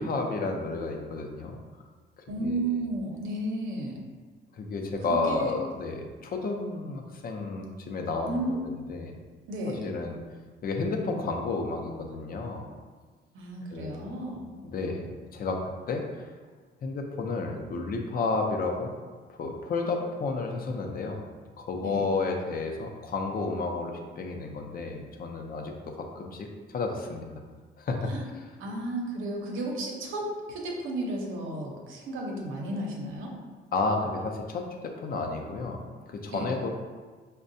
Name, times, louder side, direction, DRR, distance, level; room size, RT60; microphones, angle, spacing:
voice 1, 0.0-1.6 2.4-2.6 4.5-9.1 9.8-10.2 10.6-12.7 13.7-14.1 14.6-16.0 16.8-18.9 19.3-21.2 21.6-25.7 26.0-27.3 27.8-28.1 33.7-35.8 36.1-36.7, left 3 dB, 50° left, 2 dB, 0.6 m, -31 dB
voice 2, 2.3-4.0 5.1-5.5 8.3-8.5 9.5-9.8 13.3-14.5 21.8-22.1 28.1-28.2 28.6-33.3 36.3-36.5, right 1 dB, 85° right, 0 dB, 0.8 m, -33 dB
5.2 x 2.2 x 2.6 m, 1.4 s
cardioid pair, 90°, 20 cm